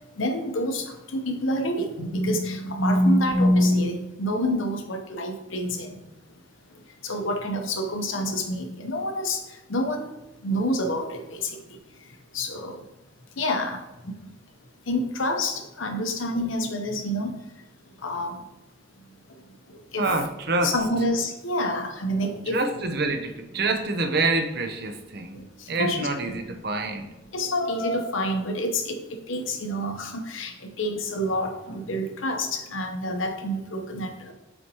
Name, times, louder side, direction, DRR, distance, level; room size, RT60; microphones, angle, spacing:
voice 1, 0.2-5.9 7.0-9.4 9.7-10.1 10.4-11.6 12.3-12.8 13.4-14.1 14.9-17.3 18.0-18.4 19.9-20.1 20.6-22.6 25.3-25.4 25.7-26.4 27.3-34.3, left 1 dB, 80° left, 5 dB, 0.9 m, -27 dB
voice 2, 20.0-20.7 22.5-27.0, right 3 dB, 50° right, 7 dB, 0.7 m, -27 dB
7.9 x 4.3 x 3.0 m, 1.0 s
head